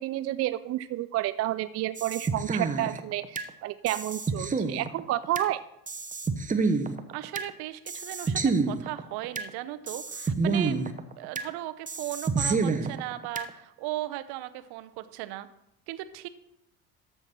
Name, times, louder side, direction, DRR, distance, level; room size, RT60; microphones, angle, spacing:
voice 1, 0.0-5.6, right 14 dB, 35° right, 14 dB, 0.4 m, -30 dB
sound 1, 2.0-3.5 3.9-5.5 5.9-7.5 7.9-9.5 9.9-11.5 11.9-13.5, right 4 dB, 15° right, 0.9 m, -28 dB
voice 2, 7.1-10.8 11.2-15.5 15.9-16.3, right 15 dB, 55° right, 13 dB, 0.8 m, -37 dB
13.5 x 4.6 x 5.9 m, 0.80 s
figure-of-eight pair, 55°, 45 cm